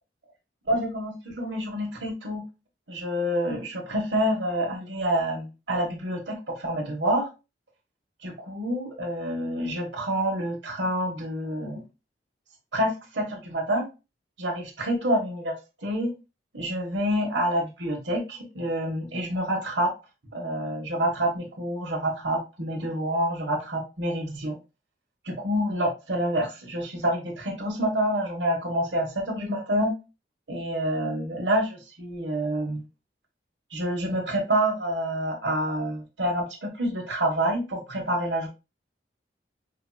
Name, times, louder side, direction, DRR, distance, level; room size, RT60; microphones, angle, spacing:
voice 1, 0.7-2.4 2.9-7.3 8.2-11.8 12.7-13.8 14.4-16.1 16.5-19.9 20.3-24.6 25.2-29.9 30.5-32.9 33.7-38.5, equal, 90° right, 1 dB, 1.2 m, -27 dB
5.1 x 2.9 x 2.2 m, 0.28 s
head